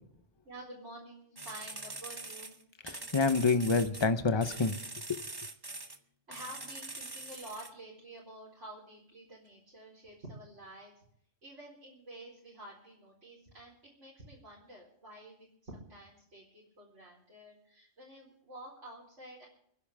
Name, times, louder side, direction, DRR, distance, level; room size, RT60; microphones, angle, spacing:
voice 1, 0.4-2.6 6.3-11.0 11.4-19.5, right 1 dB, 80° right, -7 dB, 4.8 m, -50 dB
sound 1, 1.4-4.1 4.4-6.0 6.3-7.7, right 2 dB, 20° right, 1.1 m, -43 dB
voice 2, 2.9-4.8 5.1-5.2, left 4 dB, 25° left, 10 dB, 0.9 m, -27 dB
29.5 x 10.5 x 3.6 m, 0.67 s
omnidirectional pair, 1.2 m